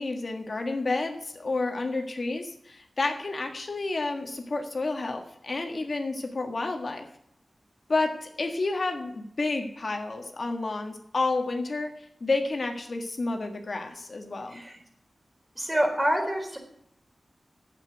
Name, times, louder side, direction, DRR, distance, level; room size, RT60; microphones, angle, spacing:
voice 1, 0.0-7.0 7.9-14.6, left 3 dB, 55° left, 4 dB, 1.7 m, -30 dB
voice 2, 15.6-16.6, equal, 20° right, 2 dB, 4.1 m, -26 dB
8.7 x 8.4 x 9.1 m, 0.72 s
wide cardioid pair, 70°, 0 cm